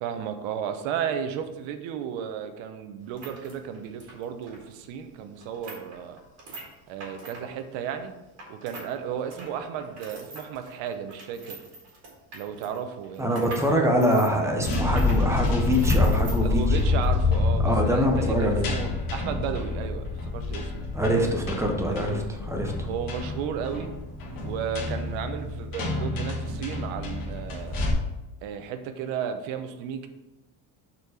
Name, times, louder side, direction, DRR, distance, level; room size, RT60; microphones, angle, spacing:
voice 1, 0.0-6.2 6.9-8.1 8.5-11.6 12.3-13.9 16.4-20.9 22.8-23.9 24.4-27.8 28.4-30.1, right 8 dB, 70° right, 8 dB, 1.0 m, -34 dB
sound 1, 3.0-8.9 9.2-17.2 17.5-17.6 18.2-18.5, right 2 dB, 30° right, 1.8 m, -44 dB
voice 2, 13.2-16.8 17.6-18.7 20.9-22.7, equal, 5° right, 2 dB, 0.5 m, -24 dB
sound 2, 14.6-27.9, left 3 dB, 45° left, 1.4 m, -27 dB
6.9 x 4.3 x 4.9 m, 1.0 s
cardioid pair, 170°, 47 cm